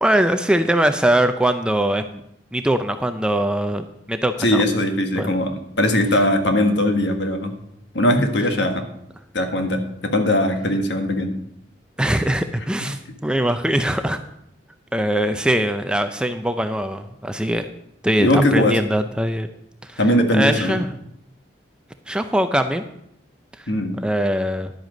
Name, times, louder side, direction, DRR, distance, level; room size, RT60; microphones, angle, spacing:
voice 1, 0.0-2.2 2.5-4.7 5.2-5.3 12.0-14.2 14.9-17.7 18.0-19.5 19.8-20.0 20.3-21.0 22.1-22.8 23.6-23.7 24.0-24.7, right 1 dB, 5° right, 8 dB, 0.4 m, -21 dB
voice 2, 4.4-7.5 7.9-8.8 9.3-11.3 12.8-12.9 18.2-18.8 20.0-20.8 23.7-24.0, left 1 dB, 65° left, 5 dB, 1.4 m, -20 dB
11.0 x 7.9 x 5.1 m, 0.77 s
head